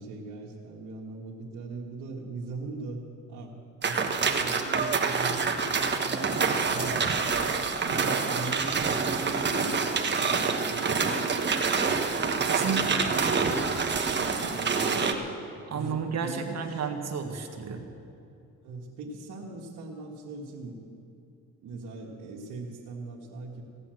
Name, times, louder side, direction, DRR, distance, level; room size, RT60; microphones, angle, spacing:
voice 1, 0.0-3.0 3.3-3.5 3.8-7.3 7.9-11.2 13.0-13.6 14.1-15.3 15.7-16.9 18.6-20.8 21.6-23.6, right 3 dB, 85° right, -5 dB, 1.7 m, -40 dB
sound 1, 3.8-15.1, right 5 dB, 35° right, 1.3 m, -27 dB
voice 2, 12.4-13.1 15.7-17.8, right 6 dB, 60° right, 4 dB, 1.6 m, -32 dB
16.5 x 9.9 x 7.7 m, 2.7 s
cardioid pair, 90°, 30 cm